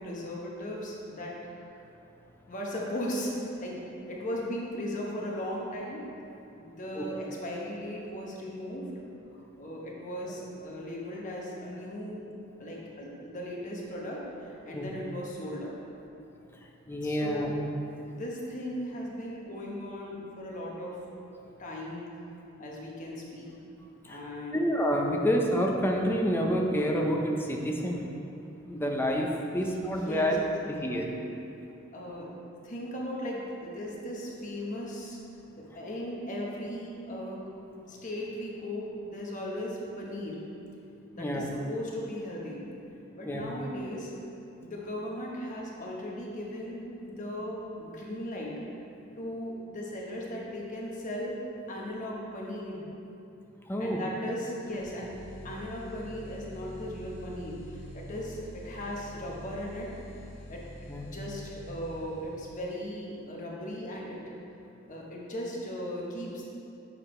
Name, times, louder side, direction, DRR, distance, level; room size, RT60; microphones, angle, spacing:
voice 1, 0.0-1.3 2.5-6.1 6.6-8.9 9.3-12.2 12.6-15.8 17.0-17.5 18.0-21.0 21.6-22.0 22.6-23.5 24.0-24.6 29.9-30.4 31.9-35.2 35.6-37.4 37.9-40.4 41.1-42.7 43.1-44.1 44.6-48.5 49.2-51.4 51.7-52.8 53.8-59.9 60.5-60.6 61.0-64.3 64.9-66.5, left 1 dB, 40° left, -3 dB, 1.1 m, -37 dB
voice 2, 16.9-17.5 24.0-24.2 24.5-28.0 28.7-30.4 30.8-31.4 41.2-41.5 43.2-43.5 53.7-54.0 60.9-61.1, equal, 10° left, 0 dB, 0.6 m, -28 dB
sound 1, 54.6-62.6, equal, 85° left, 1.3 m, -46 dB
6.8 x 4.9 x 4.3 m, 2.7 s
head